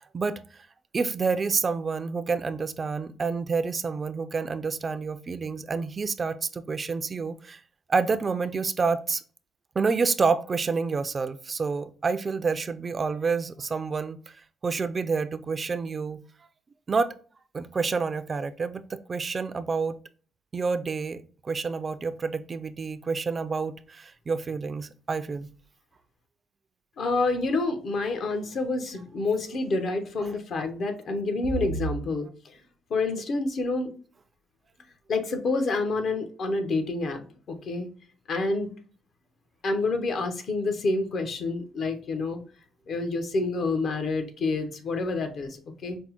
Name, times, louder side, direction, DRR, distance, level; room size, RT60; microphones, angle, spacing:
voice 1, 0.1-0.7 0.9-7.6 7.9-9.2 9.8-14.3 14.6-16.2 16.9-17.1 17.5-20.0 20.5-25.5 30.2-30.3, right 4 dB, 35° right, 0.3 m, -28 dB
voice 2, 27.0-32.6 32.9-33.9 35.1-37.9 38.3-38.7 39.6-42.4 42.9-46.0, left 3 dB, 60° left, 0.8 m, -28 dB
5.2 x 2.0 x 2.9 m
cardioid pair, 90°, 0 cm